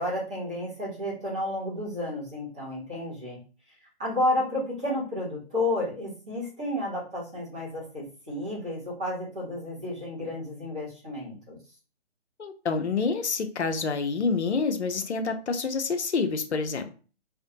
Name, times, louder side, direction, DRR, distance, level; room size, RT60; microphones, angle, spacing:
voice 1, 0.0-3.4 3.7-3.8 4.0-11.6, left 1 dB, 5° right, -10 dB, 0.4 m, -31 dB
voice 2, 12.4-16.9, left 4 dB, 85° left, 6 dB, 0.6 m, -27 dB
2.5 x 2.1 x 2.7 m, 0.37 s
figure-of-eight pair, 135°, 33 cm